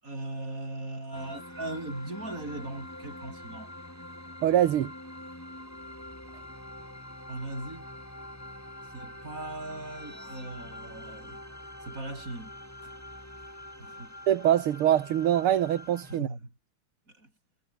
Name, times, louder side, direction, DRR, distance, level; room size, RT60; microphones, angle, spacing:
voice 1, 0.0-3.7 7.3-7.9 8.9-11.4 11.9-12.5 12.8-12.9 13.8-14.1 16.1-16.5 17.2-17.3, right 2 dB, 35° right, 7.9 m, -39 dB
sound 1, 1.1-16.0, left 1 dB, 30° left, 6.7 m, -49 dB
sound 2, 1.1-16.2, equal, 5° left, 6.5 m, -47 dB
voice 2, 4.4-4.9 14.3-16.3, right 11 dB, 85° right, 2.1 m, -24 dB
omnidirectional pair, 2.4 m